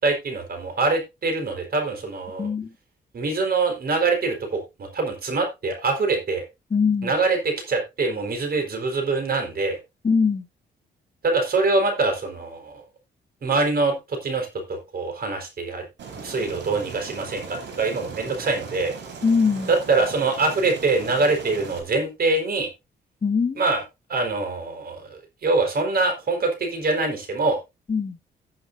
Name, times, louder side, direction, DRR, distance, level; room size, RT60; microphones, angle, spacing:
voice 1, 0.0-2.5 3.1-4.4 4.9-6.4 7.0-7.4 7.7-9.8 11.2-12.8 13.4-14.5 14.9-15.8 16.2-18.9 19.7-22.7 23.6-23.8 24.1-27.6, right 3 dB, 55° right, 4.4 m, -24 dB
voice 2, 2.4-2.7 6.7-7.1 10.0-10.5 19.2-19.7 23.2-23.6 27.9-28.2, left 5 dB, 30° left, 2.5 m, -22 dB
Aircraft, 16.0-21.8, right 5 dB, 75° right, 4.4 m, -38 dB
16.0 x 8.0 x 2.6 m
cardioid pair, 90°, 19 cm